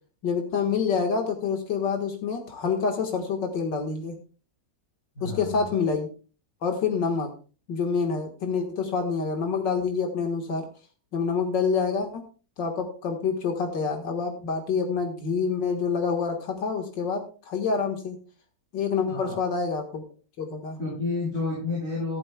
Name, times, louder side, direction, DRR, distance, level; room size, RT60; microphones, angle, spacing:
voice 1, 0.2-4.1 5.2-6.1 6.6-7.3 7.7-10.7 11.1-12.2 12.6-18.2 18.7-20.0 20.4-20.8, left 5 dB, 85° left, 3 dB, 2.3 m, -27 dB
voice 2, 5.2-5.6 19.1-19.4 20.8-22.2, left 3 dB, 45° left, -6 dB, 7.7 m, -30 dB
14.5 x 13.0 x 2.3 m, 0.36 s
omnidirectional pair, 1.9 m